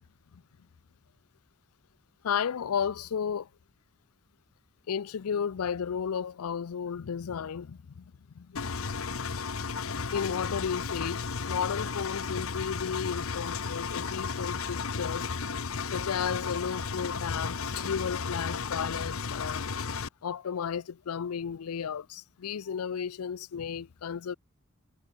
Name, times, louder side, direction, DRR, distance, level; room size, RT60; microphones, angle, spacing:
voice 1, 2.2-3.5 4.9-8.7 10.1-15.3 15.9-19.7 20.2-24.3, left 7 dB, 85° left, 0.5 m, -33 dB
Engine, 8.6-20.1, left 5 dB, 70° left, 1.0 m, -34 dB
head